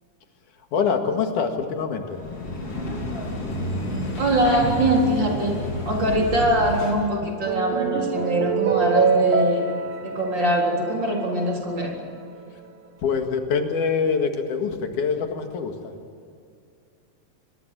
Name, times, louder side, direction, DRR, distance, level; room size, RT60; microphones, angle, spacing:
voice 1, 0.7-2.2 13.0-15.9, left 5 dB, 85° left, 5 dB, 3.4 m, -24 dB
sound 1, 2.1-7.1, left 1 dB, 50° left, 4.9 m, -30 dB
voice 2, 4.2-9.7 10.0-11.9, right 1 dB, 35° right, 0 dB, 4.4 m, -23 dB
sound 2, 7.2-11.8, right 6 dB, 75° right, 3.0 m, -25 dB
25.5 x 21.5 x 7.6 m, 2.4 s
omnidirectional pair, 3.5 m